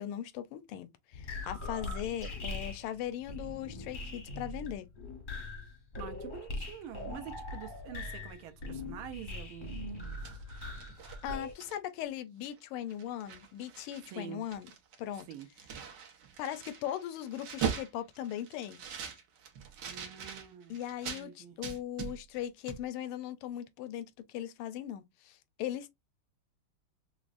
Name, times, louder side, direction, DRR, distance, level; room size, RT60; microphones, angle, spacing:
voice 1, 0.0-4.9 11.2-14.7 15.0-15.3 16.4-18.8 20.7-25.9, left 11 dB, 85° left, 1.5 m, -39 dB
sound 1, 1.1-11.5, left 2 dB, 45° left, 0.6 m, -41 dB
voice 2, 6.0-9.8 14.1-14.4 15.3-15.5 19.9-20.8 21.1-21.6, right 9 dB, 80° right, 1.5 m, -46 dB
sound 2, 10.0-12.0 12.4-12.6 12.9-14.2 14.4-21.2 21.6-22.4 22.7-22.8, right 7 dB, 60° right, 1.4 m, -41 dB
5.9 x 2.1 x 2.4 m
omnidirectional pair, 2.3 m